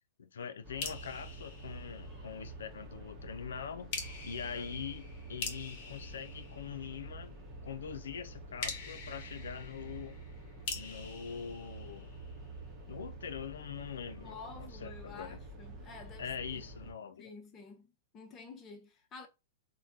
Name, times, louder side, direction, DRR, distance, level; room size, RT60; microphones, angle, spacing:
voice 1, 0.2-3.9 4.2-5.0 5.3-7.4 7.6-10.2 10.7-12.1 12.9-15.4 16.2-17.3, left 7 dB, 80° left, 0.4 m, -43 dB
sound 1, 0.6-16.9, right 2 dB, 20° right, 0.9 m, -48 dB
sound 2, 0.8-2.5 3.9-7.2 8.6-12.5, left 5 dB, 50° left, 0.9 m, -44 dB
voice 2, 14.2-16.6 17.2-19.3, left 4 dB, 25° left, 0.7 m, -50 dB
3.3 x 2.2 x 2.6 m
hypercardioid pair, 120°, 0 cm